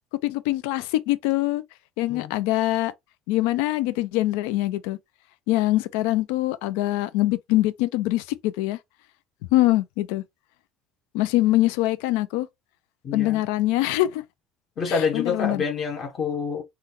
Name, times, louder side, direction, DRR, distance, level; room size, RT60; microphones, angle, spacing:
voice 1, 0.2-1.6 2.0-2.9 3.3-5.0 5.5-8.8 9.5-10.2 11.1-12.5 13.1-14.2 14.9-15.6, left 16 dB, 90° left, 0.4 m, -23 dB
voice 2, 13.0-13.4 14.8-16.6, left 5 dB, 40° left, 0.9 m, -27 dB
3.7 x 2.2 x 2.9 m
cardioid pair, 125°, 0 cm